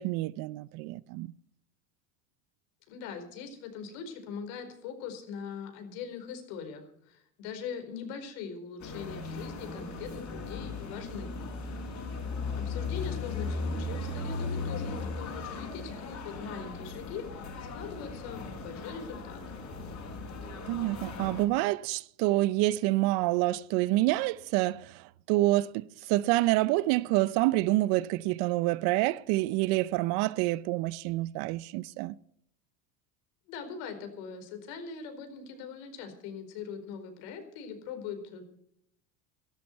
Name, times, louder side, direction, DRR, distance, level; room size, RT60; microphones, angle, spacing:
voice 1, 0.0-1.3 20.7-32.2, right 18 dB, 60° right, 0.7 m, -27 dB
voice 2, 2.9-11.3 12.6-19.4 33.5-38.4, left 6 dB, 70° left, 4.7 m, -41 dB
sound 1, 8.8-21.5, left 3 dB, 40° left, 5.4 m, -37 dB
17.0 x 13.5 x 4.5 m
supercardioid pair, 105°, 43 cm